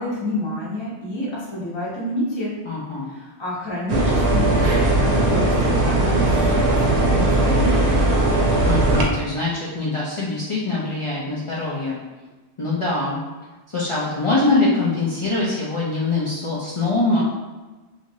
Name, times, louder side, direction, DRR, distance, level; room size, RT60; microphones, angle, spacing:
voice 1, 0.0-2.5 3.1-5.5 5.8-8.2, equal, 25° left, -7 dB, 0.8 m, -28 dB
voice 2, 2.6-3.1 8.6-12.0 12.6-13.2 13.7-17.2, left 3 dB, 55° left, -7 dB, 0.3 m, -23 dB
sound 1, 3.9-9.1, right 2 dB, 80° right, 0.8 m, -18 dB
2.9 x 2.5 x 2.6 m, 1.2 s
omnidirectional pair, 1.2 m